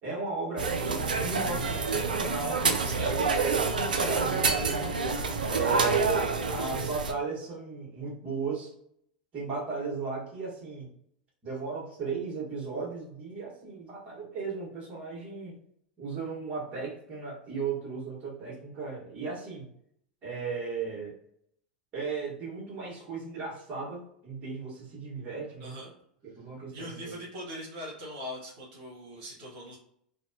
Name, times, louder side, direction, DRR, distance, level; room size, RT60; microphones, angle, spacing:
voice 1, 0.0-4.9 5.5-8.7 9.3-10.9 11.4-15.6 16.0-19.6 20.2-21.1 21.9-25.7 26.4-27.2, right 4 dB, 35° right, -3 dB, 1.4 m, -36 dB
sound 1, 0.6-7.1, right 4 dB, 85° right, 0.3 m, -28 dB
voice 2, 2.8-3.2 25.6-25.9 26.3-26.4 26.7-29.8, equal, 60° right, -4 dB, 1.1 m, -41 dB
2.7 x 2.2 x 2.7 m, 0.70 s
hypercardioid pair, 90°, 5 cm